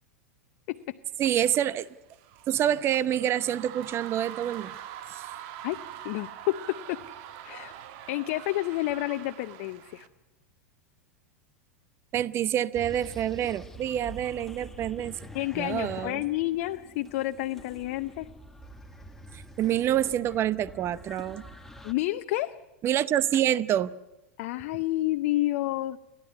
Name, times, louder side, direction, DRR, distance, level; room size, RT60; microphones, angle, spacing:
voice 1, 1.2-1.9 2.5-4.7 5.1-5.3 12.1-15.2 15.6-16.2 19.3-21.4 22.8-23.9, right 11 dB, 35° right, 0.7 m, -27 dB
sound 1, 1.8-10.1, right 11 dB, 55° right, 1.4 m, -44 dB
voice 2, 6.0-7.0 7.4-7.8 8.1-10.1 15.3-18.3 21.8-22.5 24.4-26.0, left 17 dB, 55° left, 0.7 m, -30 dB
sound 2, 12.7-21.9, equal, 5° left, 1.6 m, -46 dB
29.5 x 12.0 x 9.7 m
hypercardioid pair, 105°, 8 cm